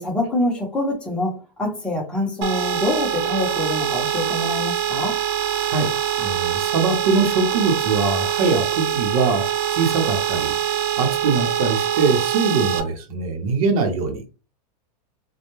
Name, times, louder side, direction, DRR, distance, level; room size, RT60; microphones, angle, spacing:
voice 1, 0.0-1.3 1.6-5.2, left 1 dB, 5° left, -3 dB, 0.7 m, -25 dB
sound 1, 2.4-12.8, right 10 dB, 40° right, 0.4 m, -24 dB
voice 2, 6.2-14.3, right 4 dB, 60° right, 5 dB, 0.8 m, -22 dB
2.2 x 2.1 x 3.0 m, 0.32 s
supercardioid pair, 165°, 21 cm